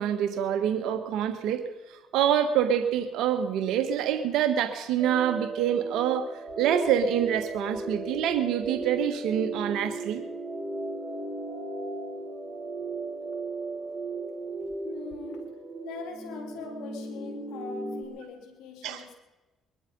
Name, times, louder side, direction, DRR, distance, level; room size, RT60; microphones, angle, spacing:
voice 1, 0.0-1.6 1.9-10.2 18.8-19.0, right 9 dB, 80° right, 8 dB, 1.4 m, -26 dB
sound 1, 5.0-18.0, right 2 dB, 20° right, 3.3 m, -36 dB
voice 2, 14.8-19.1, left 6 dB, 85° left, 4 dB, 3.2 m, -42 dB
22.5 x 11.5 x 5.4 m, 1.1 s
supercardioid pair, 80°, 0 cm